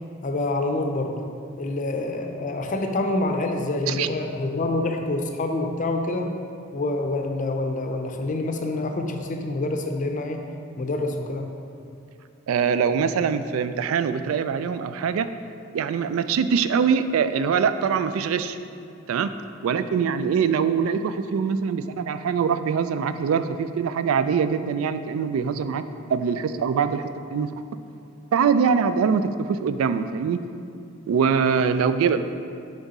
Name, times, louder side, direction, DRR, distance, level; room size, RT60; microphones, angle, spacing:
voice 1, 0.2-1.2 1.6-6.3 6.7-10.4 10.8-11.5, left 2 dB, 40° left, 4 dB, 0.5 m, -26 dB
voice 2, 12.5-15.3 15.7-18.6 19.1-19.3 19.6-25.8 26.1-27.5 28.3-30.4 31.1-32.2, right 6 dB, 85° right, 11 dB, 0.3 m, -23 dB
7.5 x 3.5 x 4.1 m, 2.4 s
head